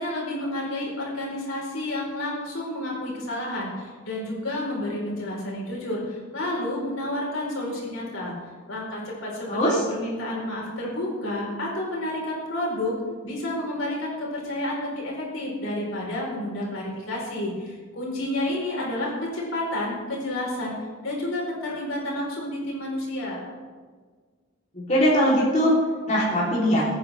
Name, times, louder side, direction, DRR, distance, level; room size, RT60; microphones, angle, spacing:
voice 1, 0.0-8.4 8.7-13.0 13.2-20.7 21.0-23.5, left 1 dB, 75° left, -3 dB, 4.6 m, -30 dB
voice 2, 9.5-9.8 24.7-25.8 26.1-26.8, equal, 35° left, -6 dB, 3.6 m, -21 dB
22.5 x 9.5 x 3.5 m, 1.5 s
head